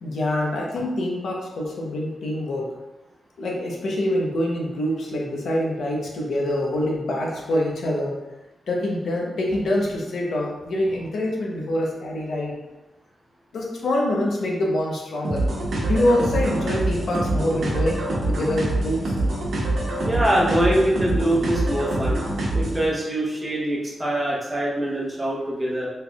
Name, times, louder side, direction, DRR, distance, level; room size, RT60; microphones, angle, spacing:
voice 1, 0.0-2.7 3.4-8.1 8.7-12.5 13.5-15.4 15.8-19.1 25.6-25.7, left 1 dB, 70° left, -2 dB, 0.8 m, -25 dB
sound 1, 15.2-22.9, right 1 dB, 70° right, 1.2 m, -25 dB
voice 2, 20.0-22.2 22.5-25.9, right 1 dB, 15° right, -6 dB, 0.9 m, -23 dB
4.4 x 3.4 x 2.3 m, 1.0 s
wide cardioid pair, 165°, 0 cm